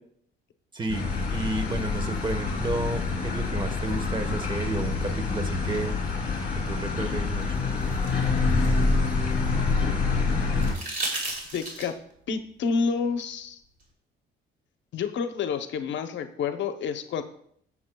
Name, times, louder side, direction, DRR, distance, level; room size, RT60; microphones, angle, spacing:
voice 1, 0.7-6.0 6.7-7.5, right 2 dB, 25° right, 7 dB, 1.2 m, -31 dB
sound 1, 0.9-10.7, left 4 dB, 45° left, 2.7 m, -26 dB
sound 2, 7.4-9.7 10.6-12.1 13.8-13.9, right 2 dB, 45° right, 2.9 m, -35 dB
voice 2, 9.8-10.2 11.5-12.0 12.3-13.6 14.9-17.2, left 5 dB, 65° left, 8 dB, 0.8 m, -29 dB
16.0 x 7.3 x 2.3 m, 0.66 s
cardioid pair, 135°, 20 cm